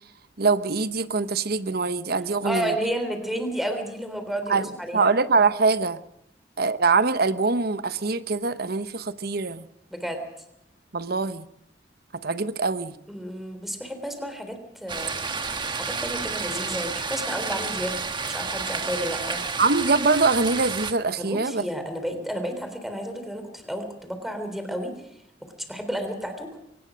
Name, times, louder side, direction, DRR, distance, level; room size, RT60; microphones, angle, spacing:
voice 1, 0.4-2.7 4.5-4.7 4.9-6.0 6.6-9.6 10.9-11.5 12.2-12.9 19.6-21.7, right 4 dB, 55° right, 13 dB, 1.0 m, -23 dB
voice 2, 2.4-5.1 9.9-10.2 13.1-15.1 15.7-18.0 18.3-19.5 21.2-24.9 25.6-26.5, equal, ahead, 7 dB, 3.5 m, -31 dB
sound 1, 14.9-20.9, right 4 dB, 25° right, 1.4 m, -30 dB
23.0 x 19.0 x 6.4 m, 0.77 s
head